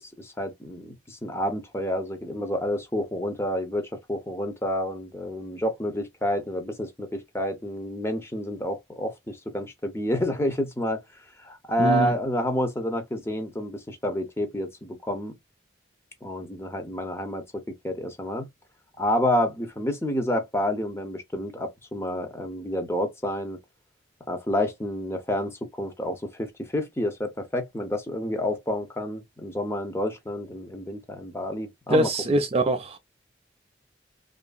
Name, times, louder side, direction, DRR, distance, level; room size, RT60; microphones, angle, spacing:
voice 1, 0.0-11.0 11.4-15.3 16.2-17.4 17.8-18.5 19.0-23.6 24.3-32.1, left 1 dB, 15° left, 0.6 m, -29 dB
voice 2, 11.8-12.1 31.9-33.0, right 1 dB, 30° right, 0.3 m, -23 dB
2.8 x 2.5 x 2.2 m
head